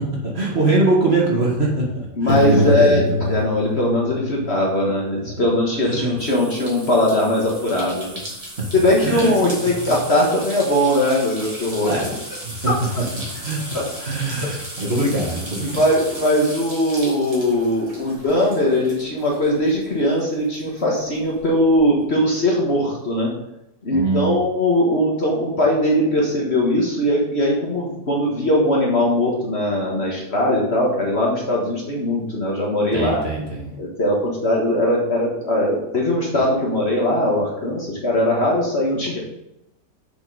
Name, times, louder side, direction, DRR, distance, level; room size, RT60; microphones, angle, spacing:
voice 1, 0.2-3.2 5.8-6.2 9.0-9.3 9.6-9.9 11.8-12.1 12.4-12.7 13.1-13.7 14.0-15.8 23.9-24.4 32.9-33.7, right 2 dB, 40° right, -3 dB, 2.0 m, -23 dB
voice 2, 2.1-3.0 3.3-8.2 8.7-12.2 13.7-13.8 15.6-23.3 23.8-33.2 33.8-39.2, left 1 dB, 40° left, -3 dB, 1.6 m, -20 dB
Piano, 2.3-5.0, left 2 dB, 65° left, 2.2 m, -23 dB
sound 1, 6.2-20.2 20.5-21.8, right 1 dB, 20° right, 1.7 m, -36 dB
6.3 x 5.9 x 5.4 m, 0.87 s
omnidirectional pair, 1.8 m